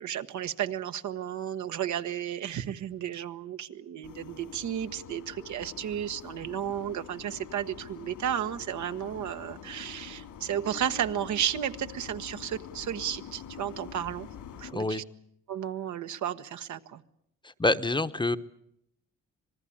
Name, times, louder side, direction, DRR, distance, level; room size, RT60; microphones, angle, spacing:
voice 1, 0.0-14.3 14.6-15.0 15.5-17.0, right 10 dB, 70° right, 9 dB, 1.3 m, -33 dB
sound 1, 4.0-14.7, left 8 dB, 80° left, 3.2 m, -45 dB
voice 2, 14.7-15.0 17.4-18.4, left 2 dB, 15° left, 11 dB, 1.0 m, -27 dB
26.5 x 19.5 x 8.7 m, 0.77 s
cardioid pair, 90°, 30 cm